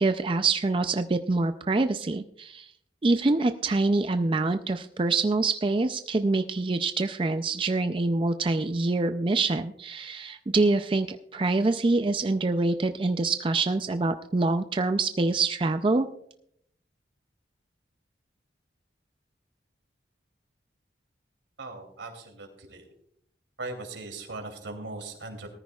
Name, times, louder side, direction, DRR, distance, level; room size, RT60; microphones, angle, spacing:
voice 1, 0.0-2.7 3.0-16.1, right 3 dB, 30° right, 8 dB, 0.4 m, -25 dB
voice 2, 21.6-22.9 23.6-25.5, right 2 dB, 85° right, 4 dB, 2.9 m, -39 dB
19.0 x 14.0 x 2.3 m, 0.71 s
head